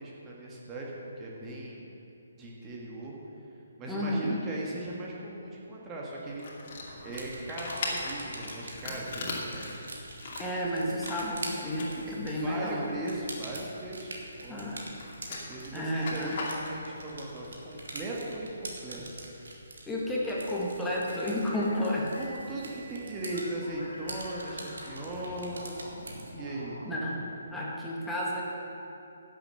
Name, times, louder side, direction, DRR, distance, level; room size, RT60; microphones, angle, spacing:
voice 1, 0.0-1.9 2.4-3.2 3.8-6.5 7.0-9.7 12.1-14.1 14.4-14.7 15.1-19.1 22.2-25.8 26.3-26.8, right 2 dB, 20° right, -3 dB, 1.7 m, -38 dB
voice 2, 3.9-4.4 10.4-12.9 14.5-14.9 15.7-16.4 19.9-22.1 26.8-28.4, left 1 dB, 5° left, -5 dB, 1.9 m, -31 dB
sound 1, 6.2-13.9 14.2-16.6, left 3 dB, 45° left, 2.6 m, -39 dB
sound 2, 6.9-26.3, right 2 dB, 75° right, 2.2 m, -45 dB
sound 3, 21.0-27.1, left 1 dB, 85° left, 2.0 m, -46 dB
11.0 x 7.7 x 7.8 m, 2.9 s
figure-of-eight pair, 145°, 0 cm